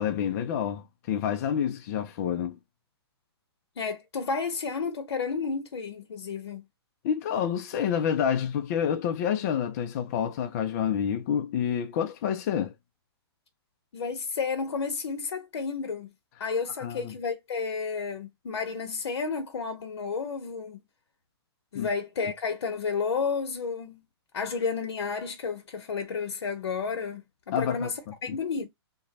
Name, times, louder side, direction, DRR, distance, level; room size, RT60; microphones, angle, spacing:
voice 1, 0.0-2.6 7.0-12.7 16.8-17.1 21.7-21.9 27.5-27.9 28.3-28.4, left 8 dB, 40° left, 0.5 m, -28 dB
voice 2, 3.8-6.6 13.9-16.1 16.4-20.8 21.7-24.0 24.3-28.7, left 5 dB, 80° left, 0.9 m, -31 dB
2.9 x 2.2 x 3.9 m
hypercardioid pair, 155°, 14 cm